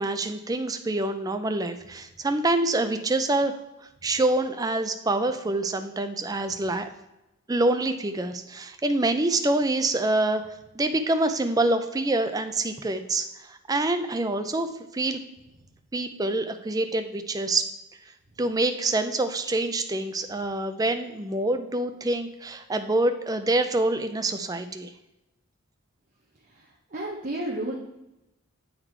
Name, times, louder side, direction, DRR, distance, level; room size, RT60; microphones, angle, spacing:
voice 1, 0.0-3.5 4.0-6.9 7.5-10.4 10.7-15.2 15.9-17.7 18.4-24.9, right 2 dB, 15° right, 8 dB, 0.4 m, -26 dB
voice 2, 26.4-27.7, right 1 dB, 35° right, -4 dB, 0.8 m, -33 dB
8.0 x 4.0 x 4.5 m, 0.94 s
head